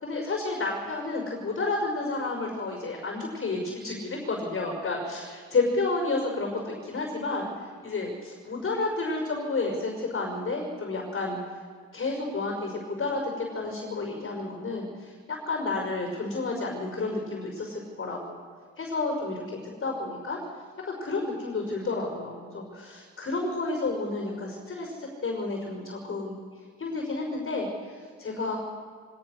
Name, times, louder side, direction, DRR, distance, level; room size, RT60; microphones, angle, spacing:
voice 1, 0.0-11.4 11.9-15.1 15.5-18.4 18.8-20.4 20.8-26.4 26.8-28.6, left 3 dB, 45° left, 1 dB, 5.7 m, -31 dB
25.0 x 18.5 x 6.5 m, 2.1 s
cardioid pair, 90°, 30 cm